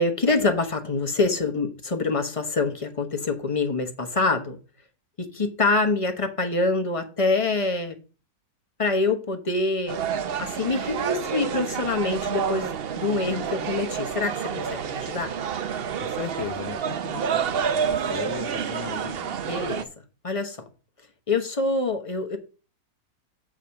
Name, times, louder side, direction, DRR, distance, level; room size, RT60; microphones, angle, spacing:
voice 1, 0.0-4.6 5.2-7.9 8.8-10.0 10.4-15.3 19.4-19.8 20.2-20.6 21.3-22.4, left 3 dB, 25° left, 1.0 m, -25 dB
sound 1, 9.9-19.8, right 7 dB, 55° right, 0.7 m, -29 dB
voice 2, 16.0-17.4 17.7-19.3, left 10 dB, 65° left, 0.8 m, -36 dB
7.0 x 5.1 x 5.7 m
omnidirectional pair, 1.7 m